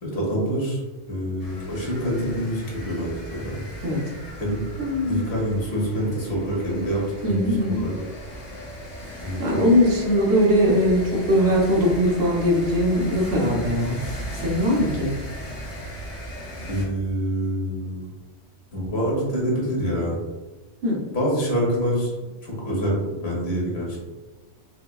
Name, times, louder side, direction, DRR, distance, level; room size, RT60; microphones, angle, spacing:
voice 1, 0.0-0.8 1.1-3.6 4.4-4.6 5.0-7.9 9.2-9.6 16.7-18.1 18.7-20.2 21.1-22.1 22.4-24.0, equal, 65° left, -4 dB, 1.4 m, -26 dB
sound 1, 1.4-16.9, equal, 35° left, 0.8 m, -37 dB
voice 2, 4.8-5.2 7.2-7.8 9.4-14.0 14.4-15.1 20.8-21.0, equal, 70° right, -3 dB, 1.1 m, -20 dB
4.8 x 2.2 x 2.2 m, 1.2 s
omnidirectional pair, 1.2 m